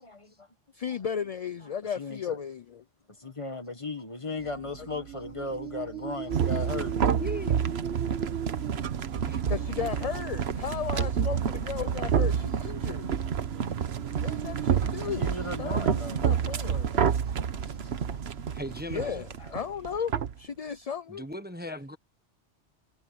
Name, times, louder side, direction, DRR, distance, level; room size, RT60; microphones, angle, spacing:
voice 1, 0.0-0.6 0.9-1.3 1.6-2.4 3.1-7.0 8.0-9.1 9.6-9.7 10.0-10.5 11.2-12.1 13.5-13.7 15.0-16.4 17.6-18.2 19.4-19.5, left 2 dB, 25° left, 1.7 m, -39 dB
voice 2, 0.7-2.6 9.5-13.1 14.2-15.8 16.2-17.1 18.9-21.2, left 7 dB, 45° left, 0.5 m, -35 dB
sound 1, 4.4-16.3, right 8 dB, 85° right, 1.5 m, -40 dB
sound 2, 6.3-20.3, right 7 dB, 65° right, 1.2 m, -29 dB
voice 3, 7.2-7.6 9.3-9.4 17.6-18.0 18.5-19.2 21.1-22.0, equal, 10° right, 1.2 m, -38 dB
omnidirectional pair, 1.2 m